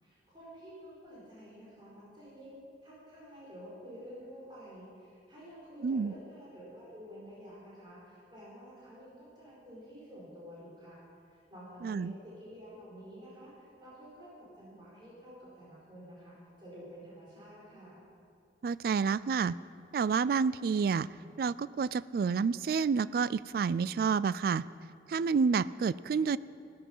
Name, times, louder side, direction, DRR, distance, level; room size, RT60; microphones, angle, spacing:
voice 1, 0.0-11.0 11.3-18.0, equal, 25° right, -7 dB, 4.7 m, -50 dB
voice 2, 5.8-6.1 11.8-12.1 18.6-19.6 19.9-21.1 21.4-24.7 25.1-26.4, right 5 dB, 55° right, 19 dB, 0.3 m, -29 dB
15.5 x 13.0 x 5.5 m, 2.5 s
head